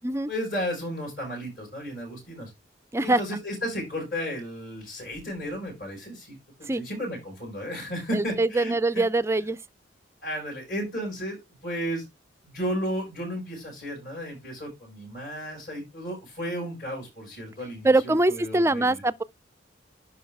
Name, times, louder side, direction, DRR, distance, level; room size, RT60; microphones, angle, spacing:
voice 1, 0.3-2.5 3.0-9.1 10.2-12.0 12.4-19.0, equal, 50° left, 6.1 m, -34 dB
voice 2, 8.1-9.6 17.8-19.2, right 2 dB, 15° right, 0.4 m, -23 dB
11.0 x 4.9 x 3.5 m
head